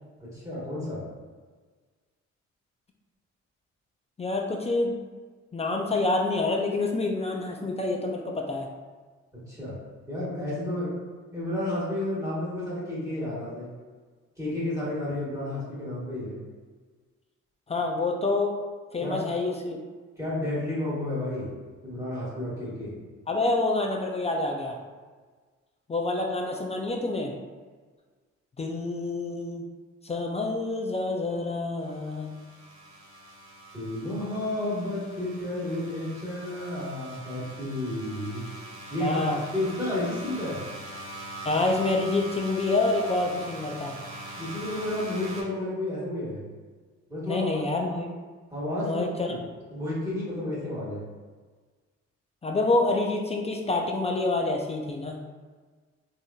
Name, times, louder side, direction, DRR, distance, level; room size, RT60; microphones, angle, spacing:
voice 1, 0.2-1.0 9.5-9.8 10.1-10.9 11.3-13.7 14.4-16.3 19.0-19.3 20.2-21.5 21.8-22.9 33.7-38.5 38.9-39.2 39.5-40.6 44.4-46.4 47.1-47.6 48.5-49.4 49.7-51.0, left 1 dB, 10° right, -9 dB, 1.4 m, -31 dB
voice 2, 4.2-5.0 5.5-8.7 17.7-18.6 18.9-19.8 23.3-24.8 25.9-27.4 28.6-29.6 30.0-32.4 39.0-39.4 41.5-44.0 47.3-48.1 48.8-49.3 52.4-55.2, left 2 dB, 20° left, 1 dB, 0.3 m, -27 dB
sound 1, 31.8-45.4, right 1 dB, 65° right, 1.1 m, -42 dB
3.4 x 2.7 x 2.3 m, 1.4 s
cardioid pair, 90°, 30 cm